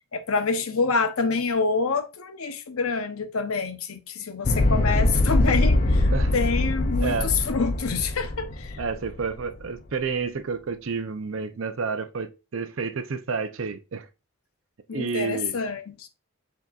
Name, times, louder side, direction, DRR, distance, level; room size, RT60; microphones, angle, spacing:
voice 1, 0.1-8.8 14.9-16.1, left 4 dB, 75° left, 0.7 m, -27 dB
sound 1, 4.4-9.6, left 1 dB, 40° left, 0.5 m, -23 dB
voice 2, 7.0-7.3 8.8-14.1 14.9-15.6, right 5 dB, 65° right, 0.5 m, -30 dB
7.3 x 2.8 x 2.3 m
head